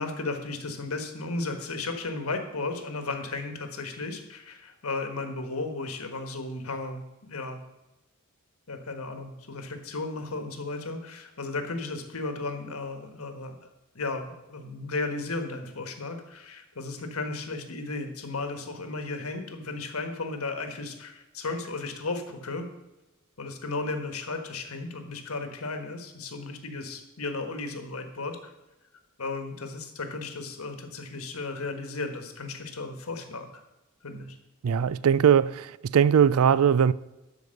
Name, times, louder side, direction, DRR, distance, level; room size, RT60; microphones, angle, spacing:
voice 1, 0.0-7.6 8.7-13.7 13.9-22.7 23.4-28.5 29.2-33.5 34.0-34.4, left 3 dB, 90° left, 1.5 m, -34 dB
voice 2, 34.6-36.9, right 8 dB, 85° right, 0.4 m, -20 dB
12.5 x 4.7 x 6.5 m
head